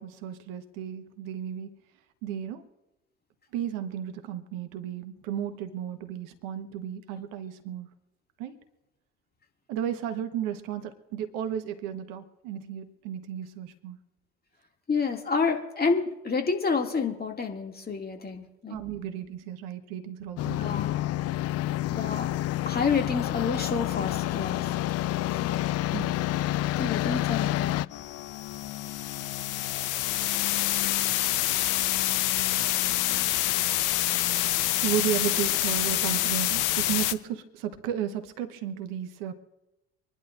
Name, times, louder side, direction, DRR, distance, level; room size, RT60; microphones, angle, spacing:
voice 1, 0.0-1.7 2.2-2.6 3.5-7.9 8.4-8.6 9.7-14.0 18.7-20.8 25.9-26.2 34.7-39.3, right 10 dB, 70° right, 8 dB, 1.3 m, -34 dB
voice 2, 14.9-18.8 20.6-20.9 21.9-22.3 22.7-24.6 25.4-25.7 26.8-27.9, left 5 dB, 25° left, 3 dB, 2.4 m, -29 dB
sound 1, 20.4-27.9, left 15 dB, 45° left, 0.5 m, -28 dB
sound 2, 27.9-37.1, left 14 dB, 65° left, 0.8 m, -27 dB
26.0 x 11.5 x 2.6 m, 0.96 s
hypercardioid pair, 55°, 34 cm